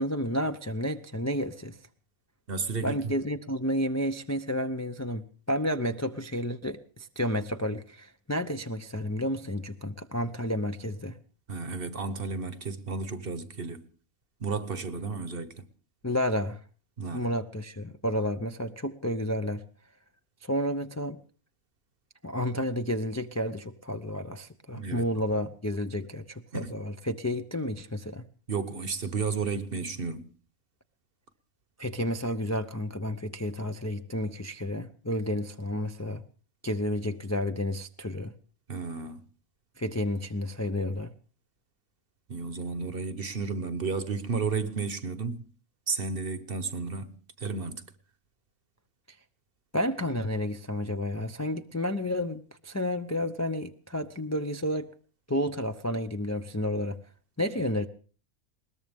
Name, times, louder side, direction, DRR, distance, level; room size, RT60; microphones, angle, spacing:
voice 1, 0.0-1.8 2.8-11.2 16.0-16.6 17.1-19.6 20.4-21.2 22.2-28.2 31.8-36.2 36.6-38.3 39.8-41.1 49.7-54.9 55.3-57.0 57.4-57.9, left 1 dB, 20° left, 0.5 m, -31 dB
voice 2, 2.5-3.1 11.5-13.9 14.4-15.7 17.0-17.3 24.7-25.1 26.5-26.7 28.5-30.3 38.7-39.2 42.3-45.4 45.9-47.1 47.4-47.8, right 4 dB, 45° right, 1.2 m, -32 dB
21.0 x 19.0 x 3.6 m
omnidirectional pair, 1.5 m